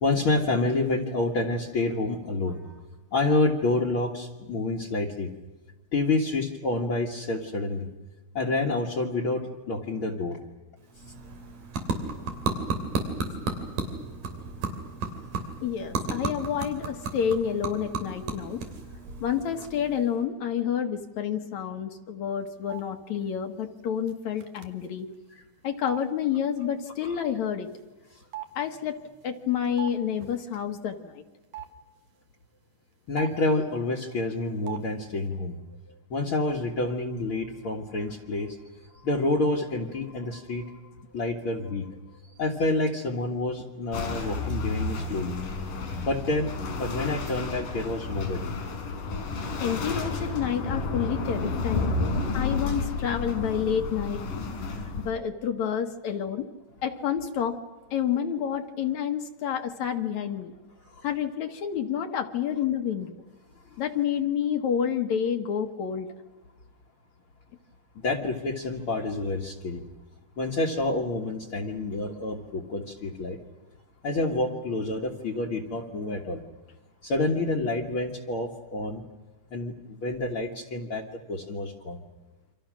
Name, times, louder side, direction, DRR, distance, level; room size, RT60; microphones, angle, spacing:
voice 1, 0.0-2.8 3.1-5.3 5.9-7.9 8.3-10.4 27.0-27.1 33.1-35.6 35.9-38.6 39.0-40.7 41.1-41.9 42.4-45.4 46.0-48.5 60.8-61.1 63.7-63.8 68.0-69.8 70.4-73.4 74.0-76.4 77.0-79.0 79.5-82.0, left 2 dB, 50° left, 4 dB, 2.0 m, -28 dB
sound 1, 10.8-20.2, right 3 dB, 80° right, 4.5 m, -34 dB
voice 2, 15.6-18.6 19.2-25.1 25.6-27.7 28.6-29.0 29.2-31.2 49.6-52.0 52.3-54.2 55.0-56.5 56.8-57.6 57.9-60.5 61.0-63.2 63.8-66.1, left 8 dB, 65° left, 6 dB, 2.4 m, -29 dB
sound 2, 22.7-22.8 24.1-24.2 24.4-24.9 25.9-26.0 27.7-27.8 28.3-30.0 30.2-30.4 31.5-31.7 33.2-33.5 34.7-34.8 35.1-35.3, right 14 dB, 60° right, 2.6 m, -39 dB
sound 3, 43.9-55.1, left 3 dB, 90° left, 5.9 m, -31 dB
29.0 x 25.5 x 6.3 m, 1.2 s
omnidirectional pair, 3.8 m